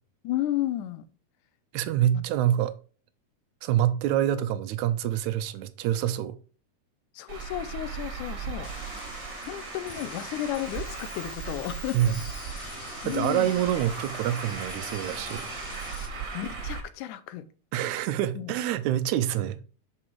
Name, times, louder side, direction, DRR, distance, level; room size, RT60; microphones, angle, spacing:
voice 1, 0.2-1.1 2.1-2.2 7.1-8.7 9.5-12.2 13.0-13.5 16.3-17.5 18.3-18.5, left 13 dB, 90° left, 2.2 m, -33 dB
voice 2, 1.7-2.7 3.6-6.4 11.9-12.2 13.1-15.4 17.7-19.6, right 11 dB, 80° right, 2.0 m, -26 dB
Traffic noise roadway noise, 7.3-16.8, right 5 dB, 45° right, 1.8 m, -37 dB
sound 1, 8.6-16.1, left 4 dB, 60° left, 2.4 m, -44 dB
6.3 x 4.9 x 4.5 m
omnidirectional pair, 3.5 m